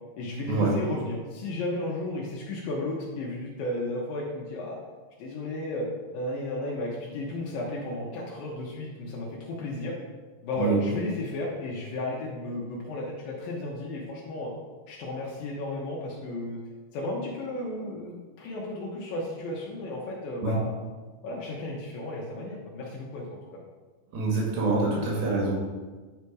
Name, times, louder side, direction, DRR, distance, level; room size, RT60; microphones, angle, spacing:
voice 1, 0.2-4.8 5.2-5.9 6.1-9.9 10.4-14.5 14.9-16.6 16.9-20.7 21.2-23.4, left 2 dB, 75° left, -3 dB, 2.7 m, -33 dB
voice 2, 24.1-25.5, right 3 dB, 85° right, -3 dB, 3.6 m, -25 dB
9.5 x 4.1 x 4.7 m, 1.3 s
omnidirectional pair, 4.2 m